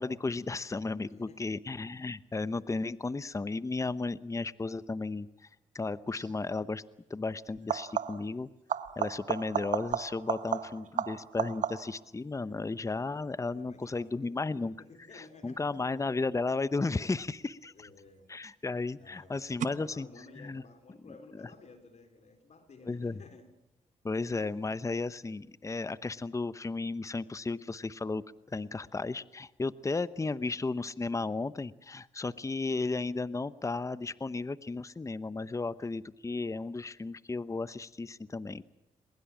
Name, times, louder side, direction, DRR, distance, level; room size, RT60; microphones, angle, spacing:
voice 1, 0.0-5.3 5.7-6.8 7.1-8.5 9.0-14.7 15.1-17.9 18.3-20.1 20.4-20.6 22.9-23.2 24.0-28.2 28.5-38.6, left 3 dB, 20° left, 16 dB, 0.8 m, -34 dB
voice 2, 1.1-1.5 10.4-10.9 13.5-14.4 14.8-15.8 16.1-16.2 17.7-18.5 19.0-23.5 35.6-35.8, left 3 dB, 55° left, 7 dB, 3.9 m, -55 dB
sound 1, 6.1-6.4 7.6-8.4 8.7-12.1 17.5-18.1 19.6-19.7, right 8 dB, 65° right, 1.2 m, -34 dB
22.0 x 21.5 x 7.4 m, 0.88 s
supercardioid pair, 60°, 14 cm